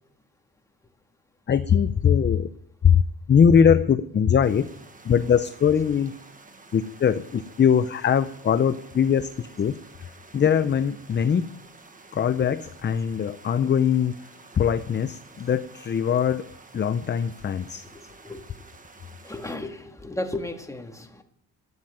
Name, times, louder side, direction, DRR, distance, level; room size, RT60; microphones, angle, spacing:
voice 1, 1.5-2.5 2.8-3.0 3.3-4.7 5.0-6.1 6.7-9.7 10.0-11.5 12.1-14.1 14.5-16.5 16.7-17.8, left 7 dB, 30° left, 12 dB, 0.5 m, -21 dB
sound 1, 4.4-19.6, right 3 dB, 20° right, 1.3 m, -50 dB
voice 2, 19.2-21.2, left 1 dB, 10° left, 4 dB, 1.7 m, -34 dB
12.0 x 9.2 x 8.8 m, 0.75 s
cardioid pair, 145°, 38 cm